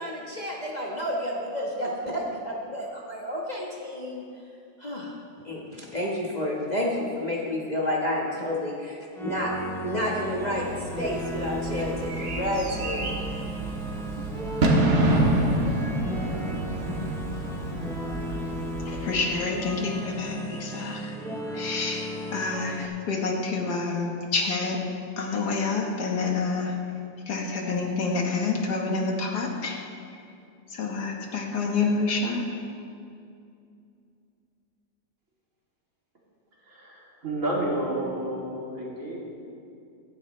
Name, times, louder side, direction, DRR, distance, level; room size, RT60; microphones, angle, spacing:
voice 1, 0.0-4.2 4.8-5.1 5.4-9.5 9.8-13.1, left 1 dB, 30° left, -4 dB, 1.3 m, -30 dB
sound 1, 9.2-22.9, equal, 5° left, 0.3 m, -35 dB
Bird / Fireworks, 10.6-19.8, right 1 dB, 75° right, 1.9 m, -28 dB
voice 2, 18.9-21.1 21.5-24.8 25.2-26.7 27.3-29.8 30.7-32.4, left 4 dB, 75° left, 1 dB, 1.9 m, -28 dB
voice 3, 36.6-39.2, right 1 dB, 50° right, -5 dB, 3.1 m, -30 dB
15.5 x 13.0 x 3.2 m, 2.5 s
omnidirectional pair, 1.8 m